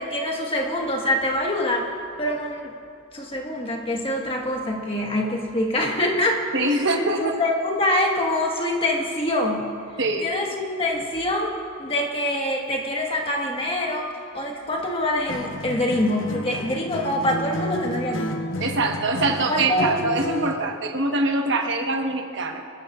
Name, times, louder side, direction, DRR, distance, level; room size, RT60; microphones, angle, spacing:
voice 1, 0.0-1.9 2.2-2.7 3.1-6.7 7.2-9.7 10.2-11.5 11.8-18.3 19.5-19.9, left 1 dB, 25° left, 0 dB, 1.5 m, -25 dB
voice 2, 6.5-7.4 10.0-10.3 18.6-22.6, right 2 dB, 55° right, 3 dB, 1.2 m, -24 dB
Acoustic guitar, 15.3-20.7, left 1 dB, 60° left, 0.8 m, -31 dB
27.0 x 13.5 x 2.5 m, 2.5 s
head